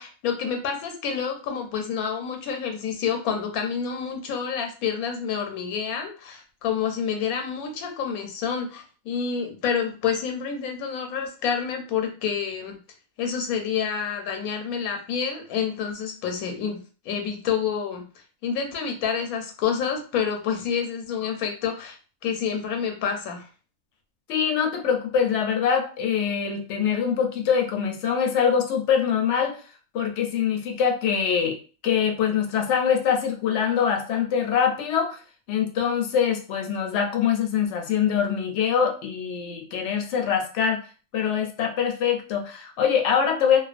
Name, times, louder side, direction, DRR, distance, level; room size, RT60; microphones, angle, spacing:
voice 1, 0.0-12.8 13.2-16.8 17.0-18.1 18.4-22.0 22.2-23.5, left 7 dB, 90° left, 4 dB, 1.1 m, -28 dB
voice 2, 24.3-29.6 29.9-35.2 35.5-40.8 41.1-43.6, left 7 dB, 65° left, 4 dB, 0.8 m, -24 dB
2.4 x 2.3 x 2.4 m, 0.36 s
omnidirectional pair, 1.5 m